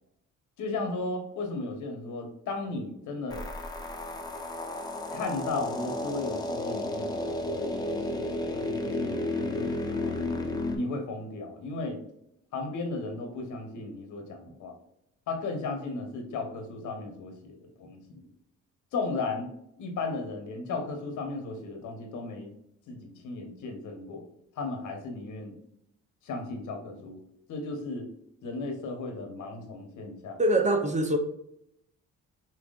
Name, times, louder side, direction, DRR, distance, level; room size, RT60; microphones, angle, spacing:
voice 1, 0.6-3.4 5.1-10.2 10.7-12.0 12.5-14.7 15.3-18.3 18.9-19.5 19.8-22.5 22.9-24.2 24.6-25.5 26.2-27.2 27.5-28.1 28.4-30.4, left 3 dB, 80° left, 3 dB, 1.3 m, -35 dB
sound 1, 3.3-10.8, left 2 dB, 15° left, 0.8 m, -32 dB
voice 2, 30.4-31.2, right 1 dB, 25° right, 5 dB, 0.7 m, -23 dB
5.8 x 2.9 x 2.5 m, 0.77 s
cardioid pair, 90°, 30 cm